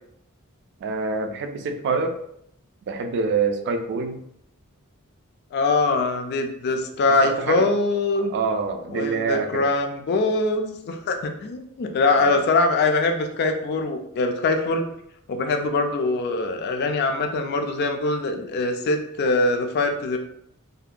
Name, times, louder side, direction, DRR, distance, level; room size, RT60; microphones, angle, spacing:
voice 1, 0.8-2.2 2.9-4.2 7.2-7.7 8.2-9.6 12.2-12.3, right 4 dB, 50° right, 6 dB, 0.3 m, -26 dB
voice 2, 5.5-8.3 8.9-14.8 15.3-20.2, left 3 dB, 50° left, 5 dB, 0.3 m, -23 dB
2.7 x 2.1 x 2.4 m, 0.73 s
head